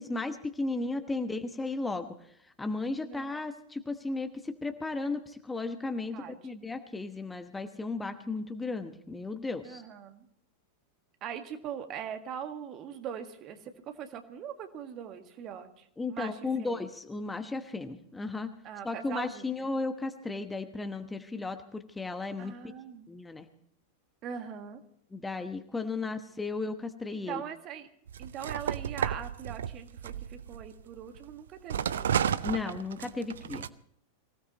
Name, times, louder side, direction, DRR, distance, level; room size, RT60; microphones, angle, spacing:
voice 1, 0.0-2.1 2.6-9.8 16.0-18.5 18.8-22.5 23.1-23.5 25.1-27.4 32.4-33.7, left 3 dB, 10° left, 8 dB, 1.1 m, -35 dB
voice 2, 3.0-3.4 6.1-6.4 9.6-10.3 11.2-16.8 18.6-19.7 22.4-23.1 24.2-24.8 27.1-27.9 28.2-32.3, right 8 dB, 35° right, 7 dB, 1.7 m, -41 dB
sound 1, 28.1-31.2 31.7-33.7, right 9 dB, 65° right, 0.6 m, -32 dB
24.5 x 16.5 x 3.0 m, 0.69 s
figure-of-eight pair, 90°, 0 cm